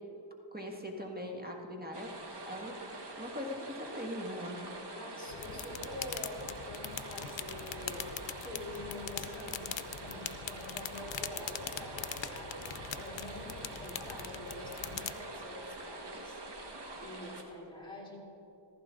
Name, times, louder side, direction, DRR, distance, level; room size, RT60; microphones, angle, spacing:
voice 1, 0.5-2.1 2.5-2.7 3.2-4.6, left 1 dB, 20° right, 1 dB, 1.8 m, -40 dB
sound 1, 1.9-17.4, right 2 dB, 55° right, 1.7 m, -45 dB
voice 2, 4.9-8.1 8.4-18.2, left 1 dB, 10° left, -3 dB, 3.8 m, -46 dB
sound 2, 5.3-15.1, left 9 dB, 65° left, 0.7 m, -42 dB
15.5 x 15.0 x 3.8 m, 2.9 s
cardioid pair, 60°, 48 cm